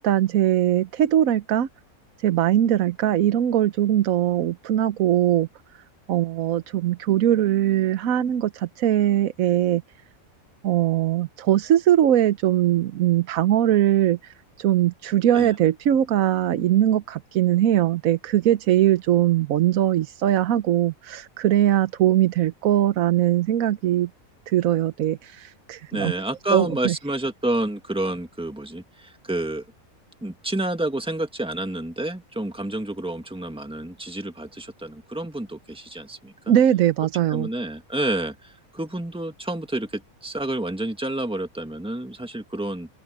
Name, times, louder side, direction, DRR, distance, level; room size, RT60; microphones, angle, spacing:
voice 1, 0.0-1.7 2.2-5.5 6.1-9.8 10.6-24.1 24.5-26.1 26.5-26.9 36.5-37.5, right 12 dB, 75° right, 1.2 m, -21 dB
voice 2, 25.9-29.6 30.2-36.3 37.3-42.9, right 1 dB, 5° right, 1.8 m, -29 dB
open air
omnidirectional pair, 1.5 m